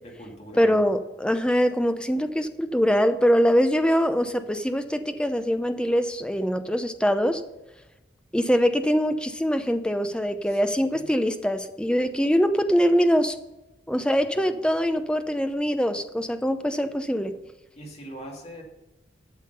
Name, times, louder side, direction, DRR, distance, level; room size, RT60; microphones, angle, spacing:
voice 1, 0.0-0.9 10.5-11.1 14.3-14.6 17.7-18.6, equal, 35° left, 0 dB, 2.4 m, -42 dB
voice 2, 0.6-7.4 8.3-13.4 13.9-17.4, equal, 5° left, 8 dB, 0.7 m, -23 dB
12.5 x 7.2 x 5.5 m, 1.0 s
head